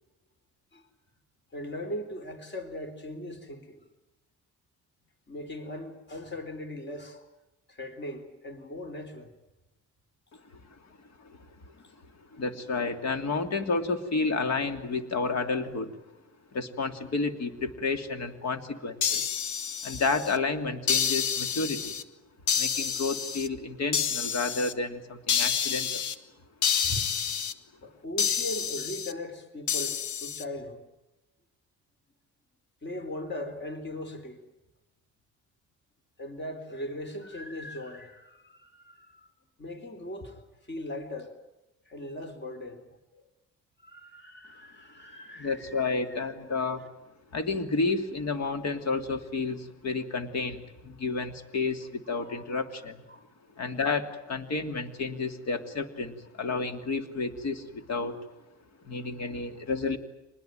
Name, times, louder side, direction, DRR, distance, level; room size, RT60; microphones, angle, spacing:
voice 1, 1.5-3.9 5.3-7.3 7.7-9.3 26.8-27.3 27.8-30.8 32.8-34.4 36.2-39.3 39.6-41.4 41.9-43.3 43.8-46.2 52.1-52.4 52.8-53.2, left 1 dB, 35° left, 3.9 m, -39 dB
voice 2, 12.3-15.9 16.5-19.3 19.8-22.0 22.6-26.0 45.4-46.9 47.3-53.0 53.6-58.2 58.8-60.0, left 4 dB, 60° left, 2.9 m, -31 dB
sound 1, 19.0-20.4 20.9-22.0 22.5-23.5 23.9-24.7 25.3-26.2 26.6-27.5 28.2-29.1 29.7-30.4, left 7 dB, 75° left, 1.5 m, -29 dB
25.5 x 20.5 x 9.2 m
cardioid pair, 90°, 30 cm